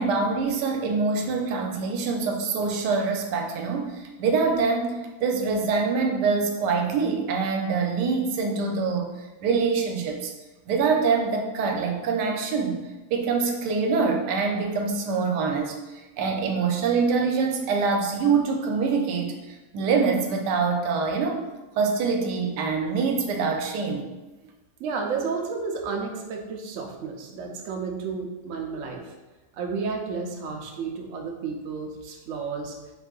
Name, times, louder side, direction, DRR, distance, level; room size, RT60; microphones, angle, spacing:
voice 1, 0.0-9.1 9.4-10.3 10.7-12.8 13.1-21.4 21.8-24.1, right 4 dB, 90° right, 2 dB, 1.2 m, -25 dB
voice 2, 24.8-29.1 29.5-32.8, right 5 dB, 65° right, 1 dB, 0.8 m, -32 dB
3.7 x 2.6 x 3.7 m, 1.1 s
omnidirectional pair, 1.8 m